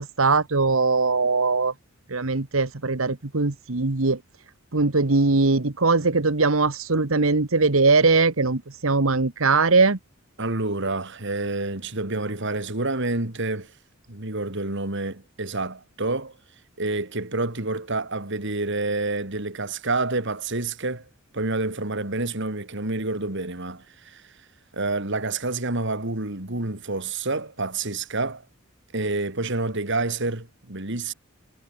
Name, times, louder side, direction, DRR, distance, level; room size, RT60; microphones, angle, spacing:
voice 1, 0.0-1.7 2.1-4.2 4.7-10.0, right 3 dB, 80° right, 1.4 m, -21 dB
voice 2, 10.4-13.7 14.1-16.3 16.8-21.1 21.3-24.2 24.7-28.4 28.9-31.1, right 2 dB, 60° right, 3.6 m, -28 dB
head